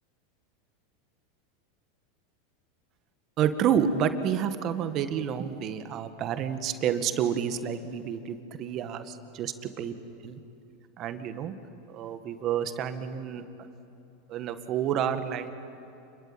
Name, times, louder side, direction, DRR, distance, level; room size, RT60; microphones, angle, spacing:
voice 1, 3.4-9.9 10.2-10.4 11.0-11.5 11.9-13.4 14.3-15.5, right 8 dB, 45° right, 9 dB, 1.9 m, -29 dB
28.5 x 22.0 x 9.0 m, 2.8 s
hypercardioid pair, 105°, 0 cm